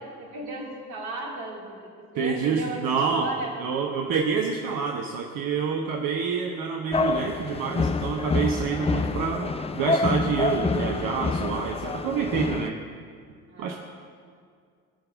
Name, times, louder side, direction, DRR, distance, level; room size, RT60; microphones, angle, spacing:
voice 1, 0.2-3.5 13.5-13.8, right 2 dB, 65° right, -1 dB, 3.0 m, -36 dB
voice 2, 2.1-3.3 3.6-12.8 13.6-13.8, right 6 dB, 50° right, 2 dB, 1.2 m, -27 dB
sound 1, 6.9-12.7, left 3 dB, 15° left, 0.6 m, -27 dB
17.5 x 6.9 x 8.5 m, 2.2 s
figure-of-eight pair, 50°, 44 cm